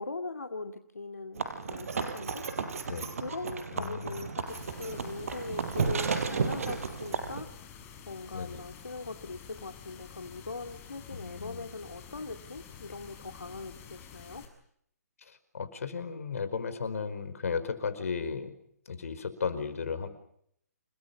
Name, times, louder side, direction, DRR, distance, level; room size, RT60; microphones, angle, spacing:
voice 1, 0.0-2.4 3.2-14.4, left 3 dB, 80° left, 5 dB, 2.5 m, -41 dB
sound 1, 1.4-7.4, right 5 dB, 60° right, 5.1 m, -33 dB
voice 2, 3.7-4.3 8.3-8.6 11.1-11.7 15.2-18.5 18.8-20.1, left 5 dB, 65° left, 12 dB, 5.1 m, -35 dB
sound 2, 4.5-14.5, left 7 dB, 25° left, 6.9 m, -49 dB
29.5 x 20.5 x 8.6 m, 0.69 s
figure-of-eight pair, 135°, 9 cm